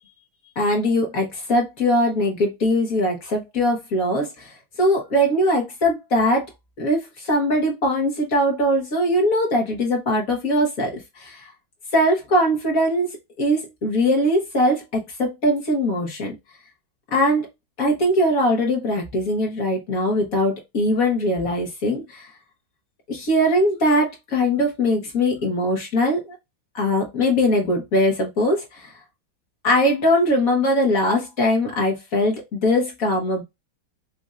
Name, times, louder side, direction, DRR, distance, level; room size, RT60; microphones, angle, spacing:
voice 1, 0.6-6.5 6.8-11.5 11.9-16.3 17.1-17.5 17.8-22.3 23.1-26.3 26.7-28.9 29.6-33.4, equal, 50° left, 1.3 m, -21 dB
5.2 x 2.6 x 2.4 m
omnidirectional pair, 2.3 m